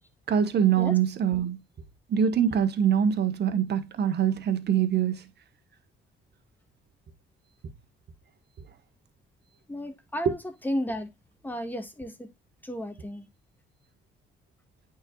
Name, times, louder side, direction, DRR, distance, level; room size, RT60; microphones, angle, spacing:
voice 1, 0.3-1.6 2.1-5.2, right 8 dB, 55° right, 1.5 m, -24 dB
voice 2, 9.7-11.1 11.4-12.3 12.6-13.3, equal, 10° left, 2.0 m, -33 dB
9.1 x 5.6 x 2.5 m
cardioid pair, 90°, 20 cm